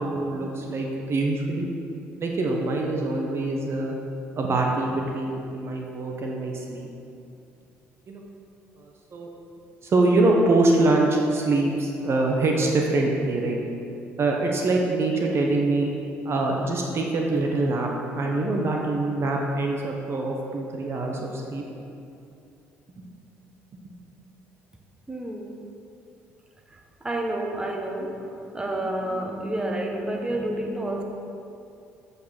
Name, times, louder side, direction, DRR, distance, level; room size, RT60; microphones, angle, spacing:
voice 1, 0.0-1.7 2.2-4.0 4.4-6.9 8.1-8.2 8.8-9.3 9.8-13.6 14.2-15.9 16.2-17.9 18.1-21.6 23.0-23.1, right 2 dB, 45° right, 0 dB, 1.1 m, -24 dB
voice 2, 25.1-25.6 26.7-31.0, right 1 dB, 15° right, 1 dB, 1.3 m, -30 dB
7.9 x 5.3 x 6.4 m, 2.7 s
hypercardioid pair, 65°, 6 cm